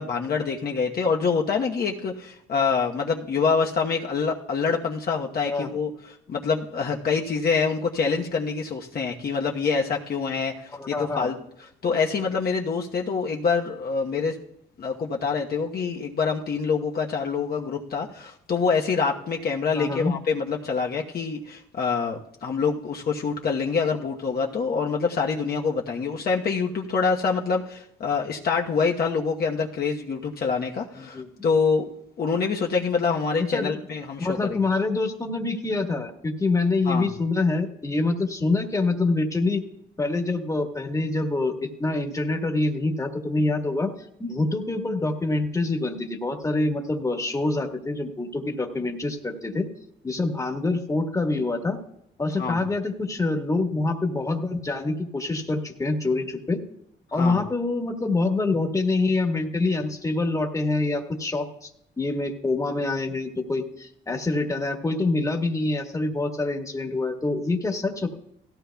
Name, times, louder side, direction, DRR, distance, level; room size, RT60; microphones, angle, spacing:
voice 1, 0.0-5.9 6.3-11.3 11.8-14.4 14.8-31.9 32.2-34.6 36.8-37.1 52.4-52.7 57.2-57.4, left 5 dB, 50° left, 0 dB, 1.1 m, -26 dB
voice 2, 10.7-11.3 19.8-20.1 31.0-31.4 33.4-33.8 34.2-39.6 40.0-49.7 50.0-51.8 52.2-56.6 57.1-61.7 62.0-68.1, left 3 dB, 15° left, 4 dB, 1.5 m, -26 dB
17.0 x 15.0 x 2.3 m, 0.75 s
cardioid pair, 90°, 20 cm